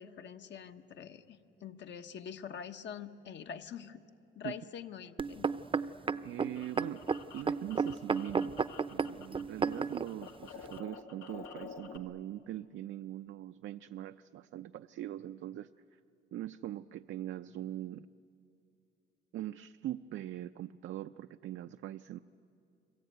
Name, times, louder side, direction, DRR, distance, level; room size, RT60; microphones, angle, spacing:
voice 1, 0.0-4.0 4.3-5.5, left 7 dB, 65° left, 7 dB, 1.2 m, -45 dB
sound 1, 5.2-10.1 10.8-10.9, right 5 dB, 25° right, 0.6 m, -32 dB
sound 2, 6.0-9.4 9.7-12.0, left 5 dB, 90° left, 1.8 m, -50 dB
voice 2, 6.2-7.0 7.3-15.7 16.3-18.1 19.3-22.2, right 13 dB, 75° right, 9 dB, 0.5 m, -42 dB
29.0 x 21.5 x 9.2 m, 2.6 s
cardioid pair, 90°, 20 cm